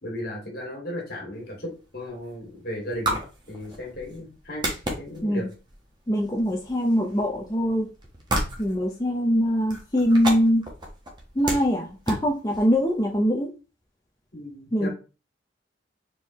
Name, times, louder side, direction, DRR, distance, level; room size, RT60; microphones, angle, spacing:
voice 1, 0.0-3.2 3.5-4.7 5.0-5.5 14.3-14.9, equal, 50° left, 0 dB, 2.0 m, -35 dB
sound 1, 1.4-13.1, right 1 dB, 25° right, 1.1 m, -35 dB
voice 2, 6.1-7.9 8.6-10.6 11.3-13.5 14.7-14.9, equal, 20° left, -1 dB, 0.6 m, -23 dB
4.6 x 3.8 x 3.0 m, 0.32 s
head